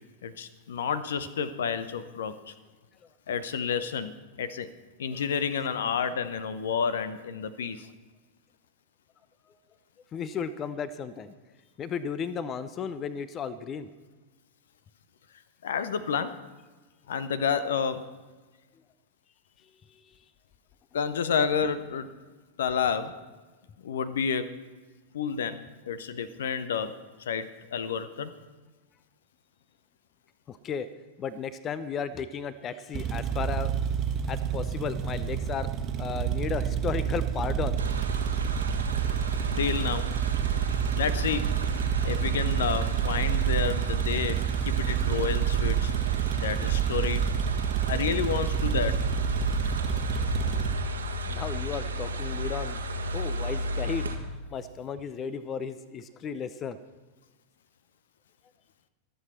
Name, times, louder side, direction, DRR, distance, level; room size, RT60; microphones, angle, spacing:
voice 1, 0.2-2.5 3.3-4.7 5.0-7.9 15.6-16.4 17.1-18.1 20.9-22.1 22.6-23.2 23.8-24.6 25.1-28.3 39.5-40.1 40.9-41.5 42.0-45.9 46.3-47.2 47.9-49.1, left 6 dB, 60° left, 14 dB, 0.7 m, -30 dB
voice 2, 10.1-11.3 11.8-13.9 30.5-30.9 31.2-33.8 34.3-35.7 36.0-37.8 50.3-50.6 51.3-52.8 53.1-54.1 54.5-56.8, left 6 dB, 30° left, 15 dB, 0.6 m, -34 dB
sound 1, 32.9-50.7, right 8 dB, 30° right, 1.3 m, -29 dB
sound 2, 37.8-54.2, right 3 dB, 75° right, 1.4 m, -32 dB
23.5 x 7.9 x 4.4 m, 1.3 s
figure-of-eight pair, 90°, 0 cm